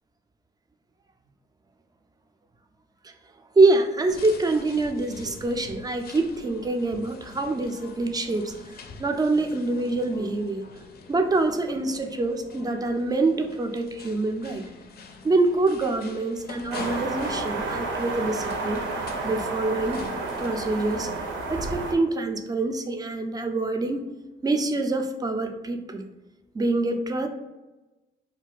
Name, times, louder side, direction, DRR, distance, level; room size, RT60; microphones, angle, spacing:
voice 1, 3.6-8.5 9.0-10.6 11.1-14.6 15.2-18.8 19.2-20.0 20.4-21.1 21.5-24.1 24.4-26.0 26.5-27.3, right 2 dB, 20° right, 5 dB, 0.3 m, -25 dB
sound 1, 4.1-21.4, left 4 dB, 50° left, 0.4 m, -45 dB
sound 2, 16.7-21.9, right 3 dB, 75° right, 0.6 m, -31 dB
2.4 x 2.2 x 3.9 m, 1.1 s
cardioid pair, 90°, 20 cm